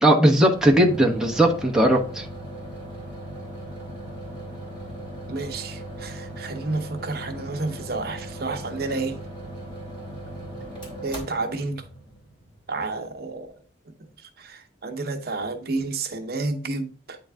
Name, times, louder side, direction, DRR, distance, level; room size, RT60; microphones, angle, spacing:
voice 1, 0.0-2.2, right 1 dB, 5° right, 1.0 m, -18 dB
sound 1, 0.5-13.1, right 1 dB, 30° left, 2.7 m, -38 dB
voice 2, 5.3-9.2 11.0-11.8 12.7-13.5 14.0-14.1 14.4-17.2, right 3 dB, 60° right, 0.9 m, -30 dB
8.8 x 3.9 x 3.4 m
head